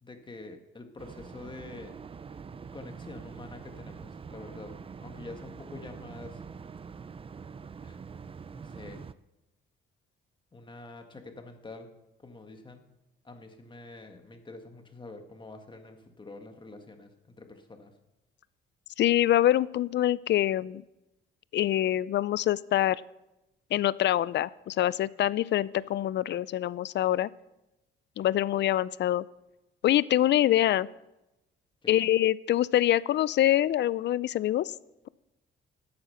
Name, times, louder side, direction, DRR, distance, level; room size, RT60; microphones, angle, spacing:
voice 1, 0.0-1.9 2.7-6.4 7.8-8.0 8.6-9.0 10.5-11.9 12.2-12.8 13.2-17.9 31.8-31.9, left 3 dB, 25° left, 5 dB, 1.8 m, -46 dB
sound 1, 1.0-9.1, right 5 dB, 30° right, 0.5 m, -44 dB
voice 2, 19.0-20.8 21.5-23.0 23.7-27.3 28.2-29.2 29.8-30.9 31.9-34.7, left 13 dB, 60° left, 20 dB, 0.5 m, -25 dB
13.0 x 8.6 x 5.8 m, 0.94 s
cardioid pair, 90°, 20 cm